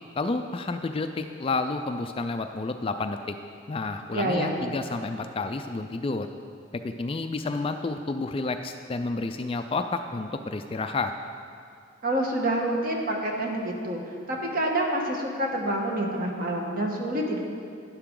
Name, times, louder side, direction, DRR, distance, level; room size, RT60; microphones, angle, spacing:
voice 1, 0.2-3.4 3.7-6.3 6.7-11.1, left 3 dB, 25° left, 7 dB, 0.3 m, -30 dB
voice 2, 4.1-4.6 12.0-14.0 14.3-17.4, right 1 dB, 45° right, 0 dB, 1.4 m, -27 dB
11.5 x 10.5 x 3.8 m, 2.3 s
head